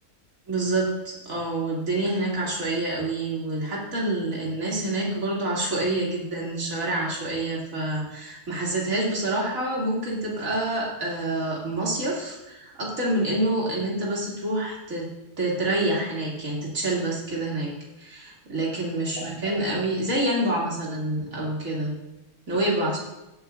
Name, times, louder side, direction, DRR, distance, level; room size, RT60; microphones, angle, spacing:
voice 1, 0.5-17.7 18.0-22.0 22.5-23.0, right 1 dB, 55° right, -4 dB, 2.9 m, -27 dB
17.5 x 8.1 x 2.5 m, 0.98 s
omnidirectional pair, 1.7 m